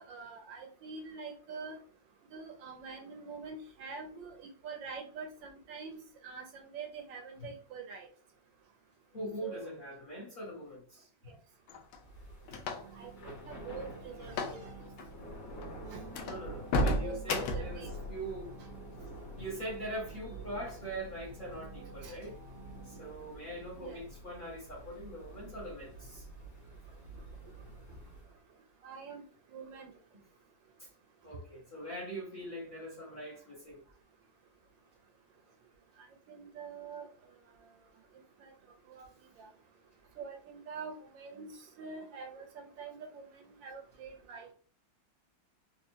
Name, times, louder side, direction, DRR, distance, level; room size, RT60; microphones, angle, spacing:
voice 1, 0.0-1.8 2.3-6.0 6.2-8.1 9.4-9.7 13.0-14.6 15.9-16.0 17.0-17.2 17.5-17.9 22.0-22.1 23.8-24.0 28.8-29.2 29.5-29.9 36.3-37.1 38.4-38.5 38.9-39.1 39.4-39.5 40.2-41.5 41.8-44.5, right 5 dB, 75° right, 4 dB, 1.3 m, -45 dB
voice 2, 9.1-11.3 12.5-12.6 16.3-18.6 19.4-22.4 22.8-26.2 30.8-30.9 31.2-33.8, right 1 dB, 30° left, -5 dB, 1.1 m, -42 dB
sound 1, 11.7-13.1 14.3-14.6 14.9-15.1 15.6-15.7 16.1-17.8, left 1 dB, 75° left, 1.3 m, -32 dB
Thunder / Rain, 12.1-28.4, right 1 dB, 50° left, 1.4 m, -49 dB
sound 2, 12.7-23.2, right 2 dB, 90° right, 1.7 m, -52 dB
4.4 x 2.5 x 2.7 m, 0.42 s
omnidirectional pair, 2.2 m